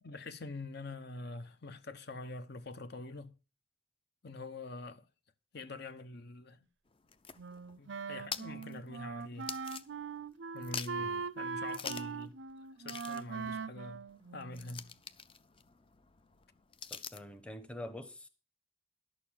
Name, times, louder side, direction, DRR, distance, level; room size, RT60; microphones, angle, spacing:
voice 1, 0.0-3.4 4.2-5.1 5.5-6.7 7.8-9.5 10.5-14.0 14.3-14.9, left 2 dB, 55° left, 0.9 m, -45 dB
sound 1, 6.9-10.3 10.6-11.2 11.7-12.2 12.5-12.6 12.8-17.4, left 6 dB, 25° left, 0.6 m, -46 dB
Wind instrument woodwind instrument, 7.4-14.8, right 5 dB, 60° right, 0.5 m, -41 dB
voice 2, 16.9-18.3, left 1 dB, 5° left, 1.0 m, -46 dB
11.5 x 6.8 x 7.3 m
head